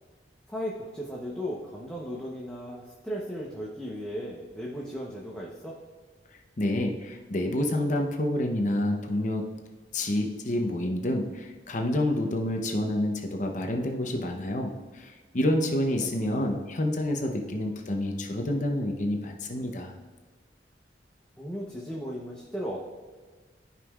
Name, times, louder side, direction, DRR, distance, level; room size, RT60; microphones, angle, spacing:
voice 1, 0.5-5.7 16.0-16.6 21.4-23.0, equal, 5° left, -4 dB, 0.8 m, -36 dB
voice 2, 6.3-9.5 9.9-20.0, left 1 dB, 40° left, 3 dB, 0.7 m, -28 dB
13.0 x 5.4 x 2.4 m, 1.4 s
head